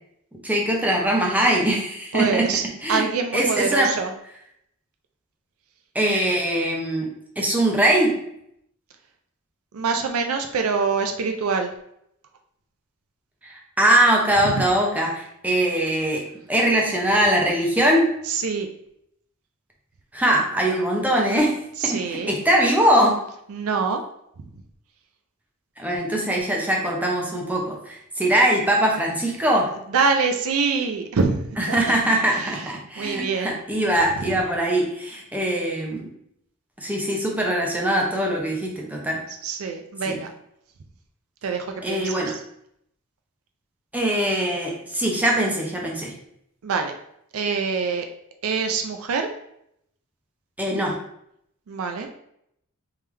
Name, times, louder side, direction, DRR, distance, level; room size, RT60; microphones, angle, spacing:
voice 1, 0.4-2.5 2.8-3.0 3.3-3.9 5.9-7.1 7.4-8.1 13.4-16.2 16.5-18.1 20.1-21.5 21.8-23.2 25.8-29.7 31.6-36.0 36.8-39.2 40.1-40.2 41.8-42.3 43.9-46.1 50.6-51.0, right 1 dB, 5° right, -1 dB, 0.7 m, -22 dB
voice 2, 2.1-2.6 2.9-4.1 9.7-11.7 14.4-14.6 18.2-18.7 21.8-22.4 23.5-24.0 29.9-31.8 32.3-32.7 33.0-33.6 34.3-34.4 39.4-40.3 41.4-42.3 46.6-46.9 47.3-48.1 48.4-49.3 51.7-52.1, right 5 dB, 70° right, 5 dB, 0.4 m, -25 dB
3.5 x 3.3 x 3.2 m, 0.73 s
head